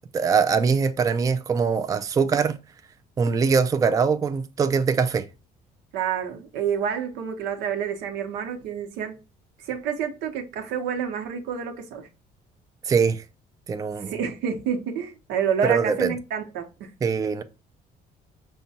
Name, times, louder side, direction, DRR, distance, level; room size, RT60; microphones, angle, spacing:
voice 1, 0.1-2.6 3.2-5.3 12.9-13.2 13.7-14.1 15.6-16.1 17.0-17.4, right 5 dB, 20° right, 0.3 m, -22 dB
voice 2, 5.9-9.2 9.6-12.1 14.1-16.9, right 7 dB, 90° right, 0.8 m, -28 dB
5.5 x 2.1 x 2.7 m
cardioid pair, 110°, 17 cm